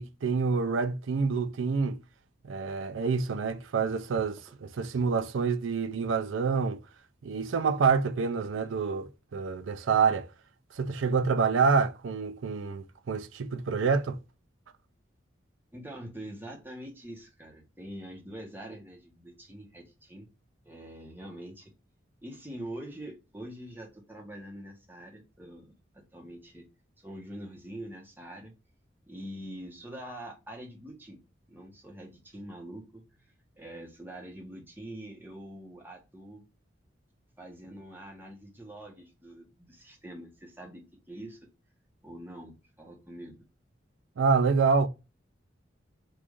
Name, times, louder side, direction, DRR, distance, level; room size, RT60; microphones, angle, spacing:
voice 1, 0.0-2.0 2.4-6.8 7.2-10.3 10.7-14.2 44.2-44.9, right 5 dB, 85° right, 0.4 m, -27 dB
voice 2, 15.7-20.3 20.6-21.7 22.2-26.7 27.0-28.5 29.1-31.2 31.5-36.4 37.4-41.4 42.0-43.4, right 1 dB, 10° right, 0.9 m, -44 dB
3.1 x 2.5 x 3.5 m
head